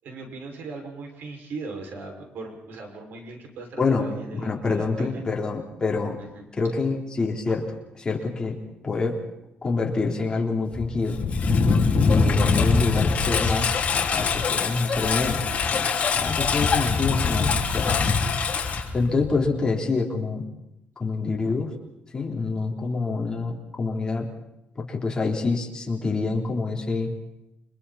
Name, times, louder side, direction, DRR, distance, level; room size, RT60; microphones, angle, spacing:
voice 1, 0.0-5.2 6.2-6.8 12.0-12.9, right 3 dB, 75° right, 2 dB, 6.1 m, -39 dB
voice 2, 3.8-6.2 6.6-9.2 9.6-11.2 12.1-15.9 16.1-17.9 18.9-20.4 21.0-21.7 22.1-24.3 24.8-27.1, left 3 dB, 25° left, 0 dB, 3.8 m, -26 dB
Engine, 10.7-19.5, left 4 dB, 45° left, 3.1 m, -23 dB
29.5 x 25.0 x 4.4 m, 0.88 s
cardioid pair, 150°, 3 cm